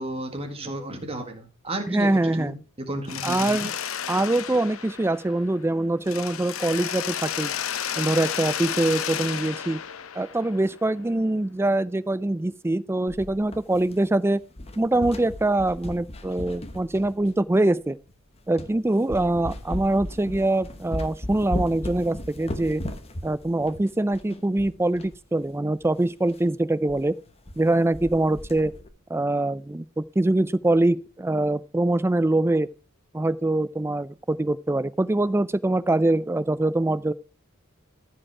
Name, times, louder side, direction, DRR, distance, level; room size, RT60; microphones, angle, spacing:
voice 1, 0.0-3.7, right 1 dB, 30° right, 1.8 m, -33 dB
voice 2, 1.9-2.5 3.2-3.7 4.1-7.5 8.0-9.8 10.1-14.4 14.8-18.0 18.5-22.8 23.2-27.1 27.6-28.7 29.1-32.7 33.1-37.1, right 2 dB, 10° right, 0.4 m, -24 dB
Mechanisms, 3.1-5.7 6.0-10.9, left 9 dB, 70° left, 0.8 m, -32 dB
sound 1, 13.1-14.2 14.5-17.5 18.1-18.2 18.6-18.8 19.1-25.2 25.4-25.5 25.8-25.9 26.3-26.5 26.9-27.0 27.3-27.6 27.9-28.9, left 1 dB, 30° left, 1.1 m, -36 dB
14.0 x 5.3 x 4.8 m
head